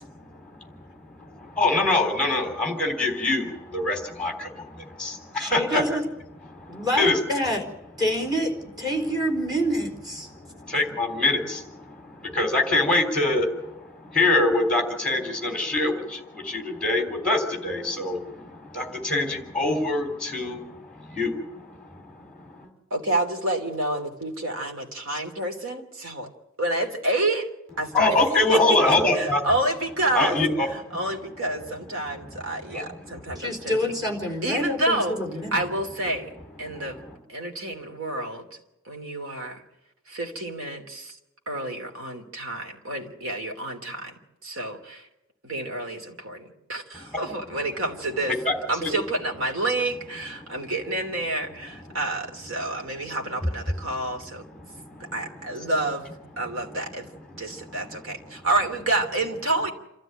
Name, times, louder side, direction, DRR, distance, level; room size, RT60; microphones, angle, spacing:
voice 1, 0.0-5.8 6.5-7.2 10.3-22.7 27.9-29.4 30.1-31.0 31.6-31.7 32.7-33.2 36.6-37.0 48.4-48.5 48.8-48.9 51.9-52.0 54.6-55.1 57.7-58.0, left 2 dB, 5° left, 3 dB, 3.5 m, -25 dB
voice 2, 5.4-6.0 6.7-7.6 8.0-8.5 8.8-10.3 33.4-35.6, equal, 20° right, 1 dB, 4.2 m, -27 dB
voice 3, 22.9-26.3 26.6-27.5 27.8-28.2 28.5-30.4 30.7-33.8 34.4-35.2 35.5-36.3 36.6-37.0 37.3-38.5 38.8-39.6 40.1-41.2 41.5-45.1 45.4-48.4 48.7-54.4 55.0-56.1 56.4-57.1 57.4-59.7, right 2 dB, 70° right, 3 dB, 3.1 m, -29 dB
27.5 x 13.5 x 9.1 m, 0.94 s
head